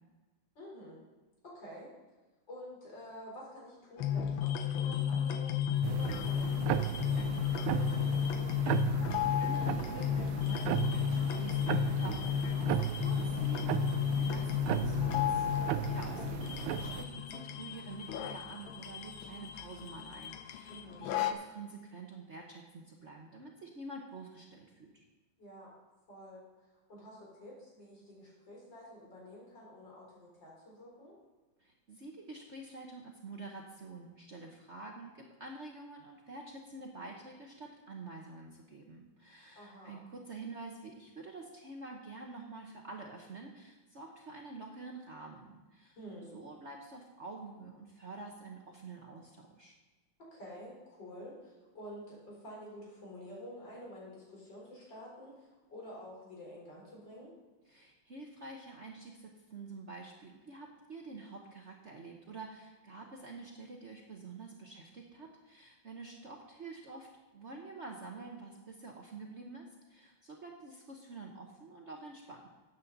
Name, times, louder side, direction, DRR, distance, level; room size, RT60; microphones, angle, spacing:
voice 1, 0.6-1.0 1.4-1.9 2.5-5.6 5.9-7.3 7.5-8.5 20.7-21.2 25.4-25.7 26.1-26.4 26.9-31.1 39.5-40.0 46.0-46.3 50.3-57.3, equal, 55° left, -4 dB, 4.7 m, -49 dB
sound 1, 4.0-21.3, left 8 dB, 75° left, 1.5 m, -33 dB
sound 2, 5.8-17.0, right 12 dB, 80° right, 1.3 m, -36 dB
voice 2, 9.0-13.9 14.2-15.5 15.8-25.0 31.6-46.0 46.2-49.7 57.7-72.5, right 3 dB, 45° right, 0 dB, 0.9 m, -48 dB
12.5 x 8.7 x 4.0 m, 1.2 s
omnidirectional pair, 2.3 m